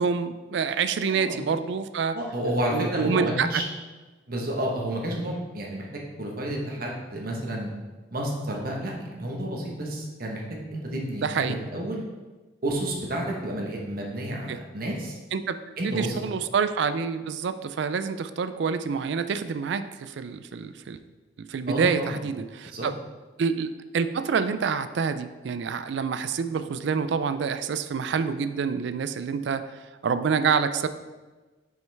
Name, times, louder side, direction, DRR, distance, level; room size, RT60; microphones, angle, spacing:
voice 1, 0.0-2.2 2.7-3.5 11.2-11.6 14.5-14.6 15.3-21.0 21.5-22.9 23.4-29.6 30.0-30.9, right 6 dB, 65° right, 12 dB, 0.3 m, -27 dB
voice 2, 1.1-1.4 2.1-3.6 4.3-7.7 8.1-10.4 10.7-12.0 12.6-15.2 15.8-16.2 21.7-22.2 22.6-22.9, right 1 dB, 50° right, -1 dB, 1.1 m, -30 dB
6.2 x 5.4 x 3.4 m, 1.3 s
head